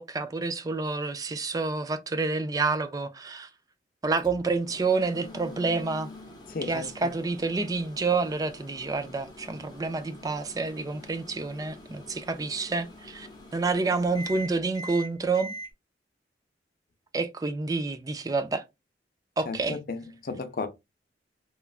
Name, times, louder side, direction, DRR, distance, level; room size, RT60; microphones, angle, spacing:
voice 1, 0.0-3.5 4.0-6.1 6.6-13.3 13.5-15.5 17.1-18.6 19.4-19.8, right 3 dB, 20° right, 0.3 m, -28 dB
Microwave oven, 4.2-15.7, equal, 25° left, 0.8 m, -45 dB
voice 2, 6.5-6.9 19.5-20.7, left 3 dB, 50° left, 0.5 m, -34 dB
3.0 x 2.3 x 2.3 m
head